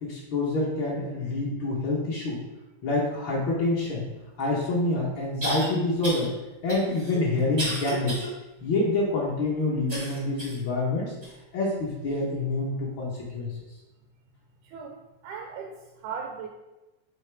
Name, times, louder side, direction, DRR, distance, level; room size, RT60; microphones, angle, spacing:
voice 1, 0.0-2.4 2.8-4.0 4.4-6.3 6.6-8.3 8.6-11.1 11.5-13.5, left 2 dB, 75° left, -6 dB, 1.1 m, -27 dB
sound 1, 4.4-4.5 5.4-5.7 6.0-6.3 6.7-8.3 8.7-8.8 9.9-10.6 11.2-11.3 12.1-12.2, right 1 dB, 45° right, 0.5 m, -33 dB
voice 2, 14.6-15.0 15.2-16.5, right 6 dB, 80° right, 2 dB, 1.9 m, -37 dB
8.3 x 3.8 x 3.4 m, 1.1 s
omnidirectional pair, 3.8 m